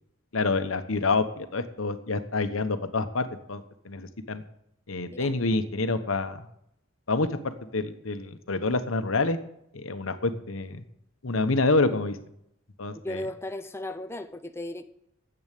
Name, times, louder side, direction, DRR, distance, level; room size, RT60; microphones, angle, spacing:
voice 1, 0.3-4.4 4.9-6.5 7.1-9.4 9.7-10.8 11.2-12.2 12.8-13.2, left 3 dB, 90° left, 9 dB, 1.1 m, -27 dB
voice 2, 13.0-14.8, left 1 dB, 10° left, 6 dB, 0.6 m, -35 dB
10.5 x 8.0 x 8.3 m, 0.76 s
head